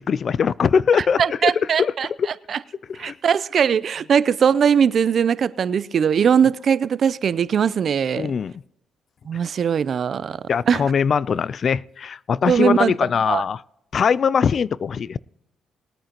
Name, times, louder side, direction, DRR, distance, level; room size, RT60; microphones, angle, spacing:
voice 1, 0.0-1.5 1.8-1.9 3.0-3.1 8.2-8.5 10.5-13.6 13.9-15.2, left 6 dB, 50° left, 22 dB, 0.3 m, -21 dB
voice 2, 1.2-2.1 2.5-2.6 3.0-8.3 9.3-10.4 10.7-10.8 12.5-12.9 13.3-13.4, right 7 dB, 55° right, 17 dB, 0.5 m, -20 dB
20.5 x 9.0 x 3.0 m, 0.82 s
cardioid pair, 90°, 0 cm